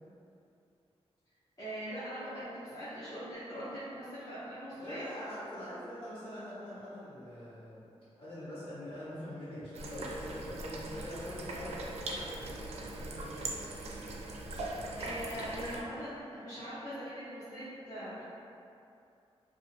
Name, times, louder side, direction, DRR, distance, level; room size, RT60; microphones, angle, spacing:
voice 1, 1.6-5.1 15.0-18.2, equal, 35° left, -14 dB, 0.8 m, -41 dB
voice 2, 4.7-7.9 8.2-13.8, left 1 dB, 55° left, -10 dB, 1.4 m, -44 dB
sound 1, 9.7-15.8, right 2 dB, 75° right, 0.4 m, -40 dB
2.4 x 2.3 x 3.1 m, 2.6 s
wide cardioid pair, 95°, 11 cm